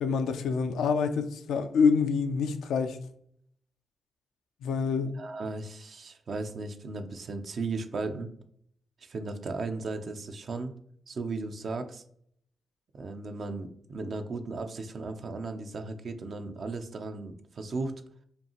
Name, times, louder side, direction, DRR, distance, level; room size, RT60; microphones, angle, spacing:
voice 1, 0.0-3.0 4.6-5.1, left 5 dB, 85° left, 0.4 m, -26 dB
voice 2, 5.0-8.3 9.0-10.7 11.1-12.0 12.9-17.9, right 3 dB, 65° right, 0.5 m, -36 dB
5.0 x 2.4 x 2.9 m
supercardioid pair, 50°, 0 cm